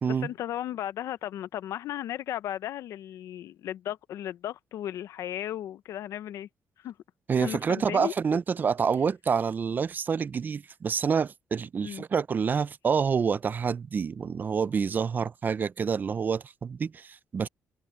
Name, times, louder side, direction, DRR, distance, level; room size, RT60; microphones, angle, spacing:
voice 1, 0.1-6.5 6.8-6.9 7.4-8.1 11.8-12.0, left 12 dB, 85° left, 0.8 m, -35 dB
voice 2, 7.3-17.5, right 6 dB, 35° right, 0.5 m, -27 dB
cardioid pair, 120°, 5 cm